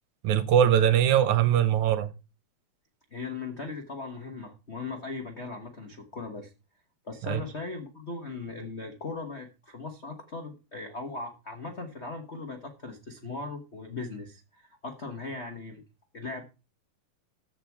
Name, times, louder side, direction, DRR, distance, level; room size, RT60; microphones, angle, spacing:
voice 1, 0.2-2.1 7.3-7.4, right 9 dB, 75° right, 2.3 m, -21 dB
voice 2, 3.1-6.5 7.0-15.8 16.1-16.4, left 3 dB, 55° left, 0.7 m, -38 dB
14.5 x 5.1 x 4.7 m
omnidirectional pair, 3.4 m